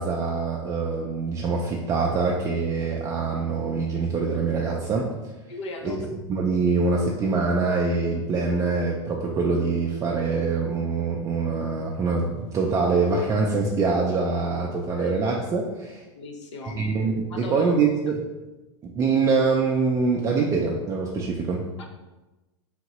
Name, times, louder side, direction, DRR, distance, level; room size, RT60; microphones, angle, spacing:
voice 1, 0.0-5.1 5.8-16.0 16.6-18.2 18.8-21.7, right 4 dB, 20° right, -1 dB, 0.4 m, -24 dB
voice 2, 5.5-6.1 14.9-15.1 16.1-16.8 17.3-17.6 21.8-21.9, left 2 dB, 80° left, 3 dB, 0.7 m, -38 dB
3.8 x 3.6 x 3.0 m, 1.1 s
hypercardioid pair, 120°, 15 cm